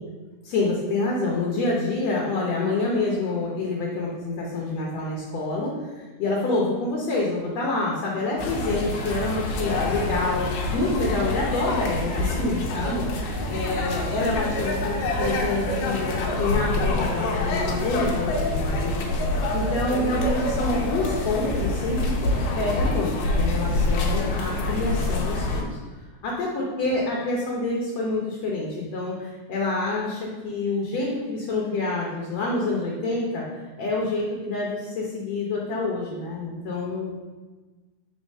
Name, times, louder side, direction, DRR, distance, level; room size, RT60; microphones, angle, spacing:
voice 1, 0.4-19.1 19.5-22.0 22.6-25.8 26.2-33.4 33.8-37.1, left 2 dB, 65° left, -3 dB, 1.8 m, -27 dB
sound 1, 8.4-25.6, left 2 dB, 85° left, 2.4 m, -26 dB
5.0 x 4.1 x 5.4 m, 1.3 s
omnidirectional pair, 3.6 m